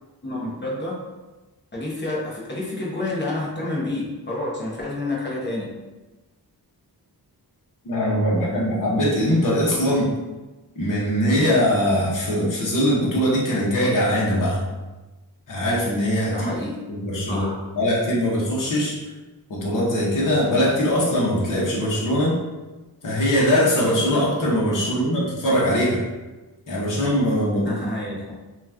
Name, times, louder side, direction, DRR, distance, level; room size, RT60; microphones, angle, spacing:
voice 1, 0.2-1.0 1.7-5.7 16.3-16.8 17.3-17.6 24.8-24.9 27.6-28.3, left 2 dB, 25° left, -4 dB, 0.8 m, -29 dB
voice 2, 7.8-10.1 10.8-14.7 15.5-16.5 16.9-17.4 17.7-19.0 19.5-22.4 23.0-26.0 26.7-27.7, equal, 55° left, -5 dB, 0.9 m, -21 dB
2.9 x 2.4 x 3.4 m, 1.1 s
wide cardioid pair, 165°, 39 cm